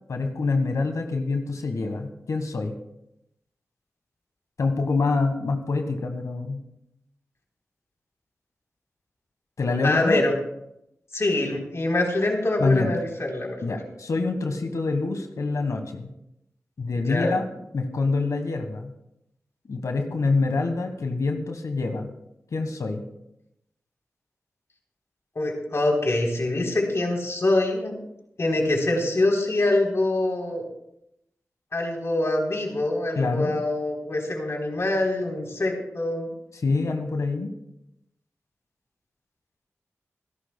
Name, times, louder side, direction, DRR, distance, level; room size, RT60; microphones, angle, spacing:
voice 1, 0.1-2.8 4.6-6.6 9.6-10.2 12.6-12.9 13.6-16.1 16.8-17.4 17.7-18.9 19.7-22.1 22.5-23.0 33.1-33.5 36.6-37.5, left 3 dB, 80° left, 5 dB, 1.4 m, -26 dB
voice 2, 9.8-10.3 11.1-13.8 17.0-17.4 25.4-27.9 28.4-30.6 31.7-36.3, left 2 dB, 55° left, 0 dB, 3.6 m, -24 dB
25.5 x 12.0 x 2.2 m, 0.81 s
cardioid pair, 50°, 5 cm